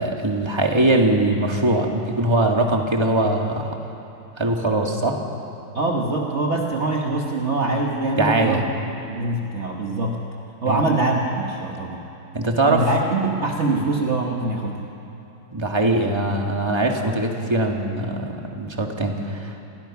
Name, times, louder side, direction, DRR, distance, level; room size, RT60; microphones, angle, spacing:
voice 1, 0.0-3.7 4.4-5.2 8.2-8.6 10.6-10.8 12.3-12.9 13.7-13.8 15.5-19.6, right 2 dB, 15° right, 1 dB, 1.9 m, -21 dB
voice 2, 5.7-8.7 9.0-10.3 10.6-12.0 12.7-14.9, right 2 dB, 40° right, 0 dB, 1.5 m, -24 dB
28.5 x 22.5 x 5.9 m, 2.9 s
omnidirectional pair, 2.0 m